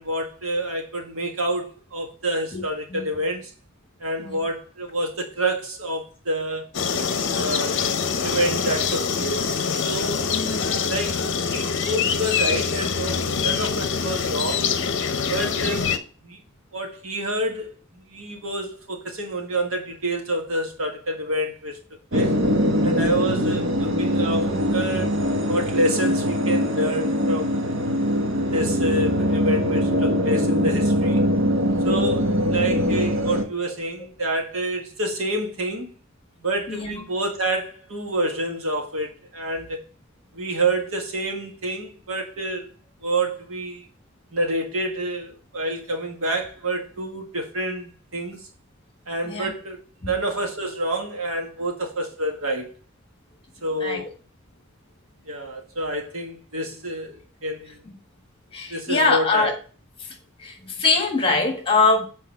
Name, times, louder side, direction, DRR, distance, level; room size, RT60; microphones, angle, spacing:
voice 1, 0.0-3.5 4.0-6.7 7.3-7.8 8.2-9.5 9.8-10.3 10.9-14.7 15.3-15.9 16.2-16.4 16.7-21.8 22.1-22.3 22.8-25.2 25.5-27.6 28.3-31.2 31.8-35.9 36.4-39.8 40.3-42.7 43.0-43.9 44.3-48.4 49.1-49.8 50.1-52.7 53.6-54.1 55.3-57.8 58.7-59.5, right 1 dB, 85° right, 1.7 m, -28 dB
sound 1, 6.7-16.0, left 5 dB, 60° left, 0.7 m, -25 dB
voice 2, 10.3-10.7 36.7-37.0 49.2-49.5 50.0-50.1 53.8-54.0 57.8-57.9 58.5-59.5 60.0-62.1, left 3 dB, 25° left, 1.6 m, -23 dB
sound 2, 22.1-33.4, equal, 65° right, 1.1 m, -22 dB
7.2 x 4.4 x 4.4 m
head